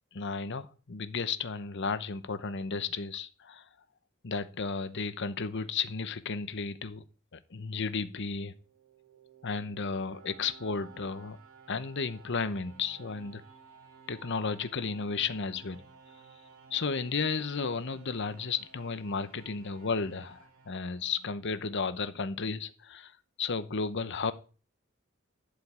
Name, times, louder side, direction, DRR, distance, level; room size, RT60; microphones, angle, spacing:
voice 1, 0.1-3.7 4.2-7.0 7.3-8.5 9.4-11.4 11.7-13.4 14.1-15.8 16.7-24.3, left 4 dB, 60° left, 0.9 m, -33 dB
sound 1, 8.5-21.5, right 5 dB, 80° right, 2.5 m, -56 dB
11.5 x 5.3 x 8.7 m
head